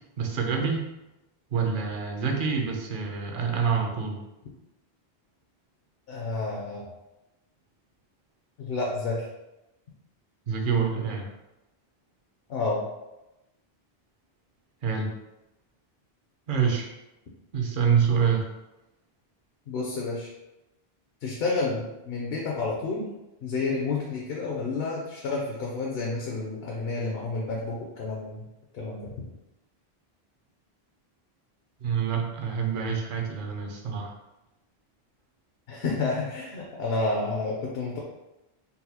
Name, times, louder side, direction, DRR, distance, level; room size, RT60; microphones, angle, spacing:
voice 1, 0.2-0.9 1.5-4.2 10.5-11.3 14.8-15.1 16.5-16.9 17.5-18.4 31.8-34.1, right 6 dB, 60° right, 1 dB, 0.7 m, -26 dB
voice 2, 6.1-6.9 8.6-9.3 12.5-12.9 19.7-20.3 21.2-23.1 23.4-28.5 28.7-29.2 35.7-38.0, left 3 dB, 75° left, -2 dB, 0.8 m, -30 dB
3.9 x 2.3 x 2.7 m, 0.97 s
omnidirectional pair, 1.1 m